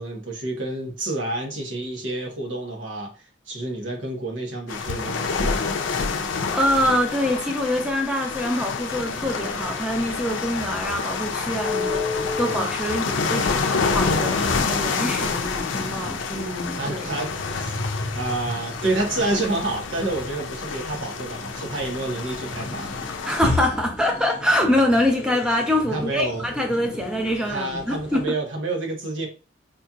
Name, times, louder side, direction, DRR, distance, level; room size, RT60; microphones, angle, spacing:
voice 1, 0.0-3.1 3.5-5.7 12.4-12.7 16.0-16.2 16.8-17.8 18.1-22.9 24.6-24.7 25.9-26.4 27.5-29.3, right 2 dB, 85° right, 1.2 m, -29 dB
sound 1, 4.7-23.4, left 5 dB, 90° left, 0.5 m, -28 dB
voice 2, 6.5-17.1 23.2-28.3, left 1 dB, 5° right, 0.7 m, -25 dB
sound 2, 8.9-28.3, left 2 dB, 55° left, 1.0 m, -35 dB
4.4 x 2.8 x 2.4 m
head